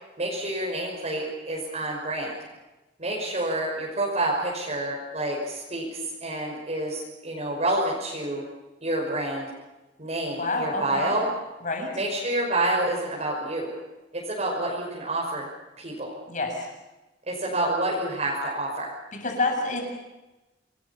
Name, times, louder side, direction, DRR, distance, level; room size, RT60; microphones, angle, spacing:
voice 1, 0.2-2.3 3.0-8.4 8.8-9.5 10.0-11.3 11.9-13.7 14.1-15.5 15.8-16.2 17.3-18.9, right 1 dB, 40° right, -3 dB, 5.6 m, -28 dB
voice 2, 10.4-11.2 11.6-11.9 16.3-16.7 19.1-19.8, left 2 dB, 45° left, 3 dB, 7.4 m, -28 dB
28.5 x 21.0 x 7.1 m, 1.1 s
head